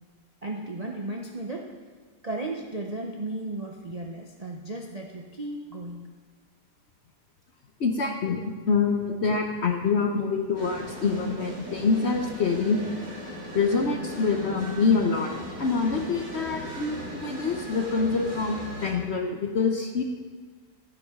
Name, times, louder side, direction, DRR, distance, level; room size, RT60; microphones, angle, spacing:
voice 1, 0.4-1.7 2.2-6.1, right 2 dB, 45° right, 0 dB, 0.5 m, -35 dB
voice 2, 7.8-12.8 13.5-15.3 15.6-20.0, left 4 dB, 55° left, 3 dB, 0.8 m, -26 dB
sound 1, 10.5-18.9, equal, 85° right, 3.7 m, -38 dB
12.5 x 10.0 x 3.6 m, 1.5 s
omnidirectional pair, 1.8 m